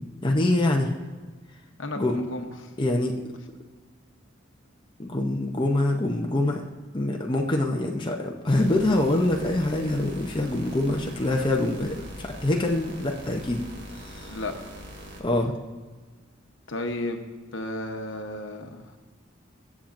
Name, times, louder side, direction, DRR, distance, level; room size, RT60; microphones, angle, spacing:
voice 1, 0.2-0.9 2.0-2.2 2.8-3.2 5.0-6.6 6.9-13.6 14.0-14.3 15.2-15.5, left 1 dB, 25° left, 0 dB, 0.7 m, -25 dB
voice 2, 1.8-2.5 14.3-14.5 16.7-18.8, left 1 dB, 70° left, 4 dB, 1.0 m, -33 dB
sound 1, 8.5-15.2, equal, 55° right, 1.5 m, -42 dB
21.5 x 7.3 x 2.6 m, 1.4 s
head